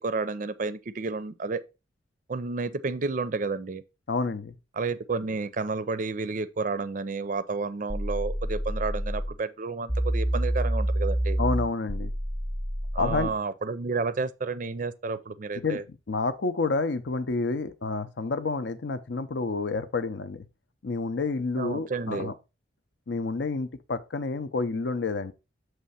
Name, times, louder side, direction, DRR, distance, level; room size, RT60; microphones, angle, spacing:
voice 1, 0.0-1.6 2.3-3.8 4.7-11.4 12.9-15.8 21.6-22.3, right 4 dB, 45° right, 0.4 m, -31 dB
voice 2, 4.1-4.5 11.4-12.1 13.0-13.3 15.6-15.8 16.1-20.5 20.8-22.3 23.1-25.3, left 3 dB, 70° left, 0.6 m, -29 dB
sound 1, 7.9-9.4 9.9-13.4, right 1 dB, 10° left, 0.7 m, -28 dB
7.4 x 3.2 x 5.5 m
head